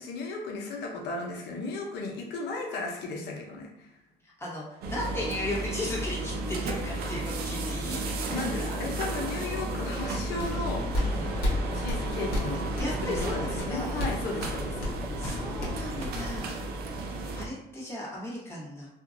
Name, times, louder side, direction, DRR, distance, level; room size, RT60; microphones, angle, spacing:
voice 1, 0.0-3.9 8.3-10.8 11.7-12.6 13.0-15.0, left 3 dB, 80° left, 1 dB, 0.7 m, -35 dB
voice 2, 4.2-8.8 11.0-11.3 12.8-13.9 15.2-16.6 17.3-18.9, left 1 dB, 15° left, -6 dB, 1.1 m, -36 dB
sound 1, 4.8-17.4, right 2 dB, 65° right, 0.5 m, -33 dB
sound 2, 8.3-15.8, left 1 dB, 10° right, 1.3 m, -43 dB
sound 3, 10.2-16.4, left 1 dB, 60° left, 1.1 m, -35 dB
2.8 x 2.4 x 2.5 m, 0.87 s
cardioid pair, 110°, 17 cm